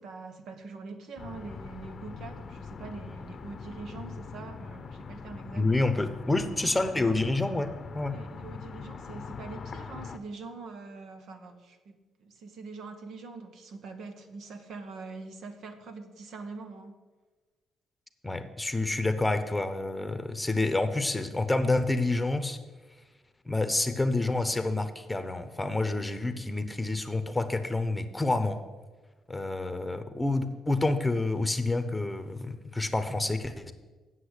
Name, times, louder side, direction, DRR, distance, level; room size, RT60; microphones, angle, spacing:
voice 1, 0.0-5.9 8.1-17.0 29.4-29.5, right 4 dB, 75° right, 7 dB, 1.3 m, -44 dB
sound 1, 1.2-10.2, left 5 dB, 45° left, 0.7 m, -42 dB
voice 2, 5.5-8.2 18.2-22.6 23.4-28.6 29.3-33.7, left 2 dB, 10° left, 10 dB, 0.9 m, -28 dB
8.3 x 7.6 x 8.2 m, 1.3 s
cardioid pair, 90°, 0 cm